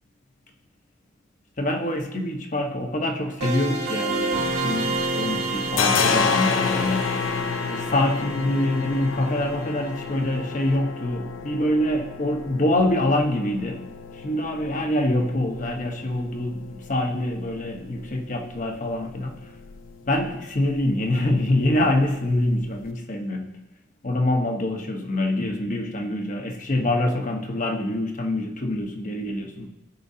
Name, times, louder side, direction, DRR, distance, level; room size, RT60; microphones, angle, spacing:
voice 1, 1.6-7.1 7.7-13.8 14.1-19.5 20.1-23.5 24.0-29.7, left 1 dB, 40° left, 3 dB, 1.0 m, -25 dB
sound 1, 3.4-10.1, right 2 dB, 90° right, 2.9 m, -30 dB
sound 2, 4.2-5.1 5.4-22.9, left 5 dB, 90° left, 0.6 m, -31 dB
16.0 x 5.4 x 2.8 m, 0.94 s
head